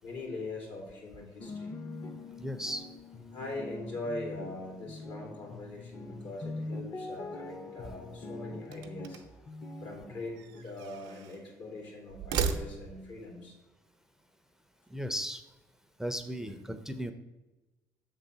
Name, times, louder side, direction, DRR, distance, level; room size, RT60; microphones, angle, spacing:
voice 1, 0.0-1.8 3.3-9.2 9.8-13.5 16.4-16.5, left 2 dB, 75° left, 0 dB, 2.6 m, -42 dB
sound 1, 1.4-10.6, left 2 dB, 40° left, 0.8 m, -43 dB
voice 2, 2.4-2.9 14.9-15.4 16.0-17.1, equal, 5° right, 8 dB, 0.5 m, -36 dB
sound 2, 8.6-9.5 10.4-11.4 12.1-13.1, right 6 dB, 90° right, 0.6 m, -36 dB
6.9 x 3.9 x 5.5 m, 1.1 s
supercardioid pair, 80°, 8 cm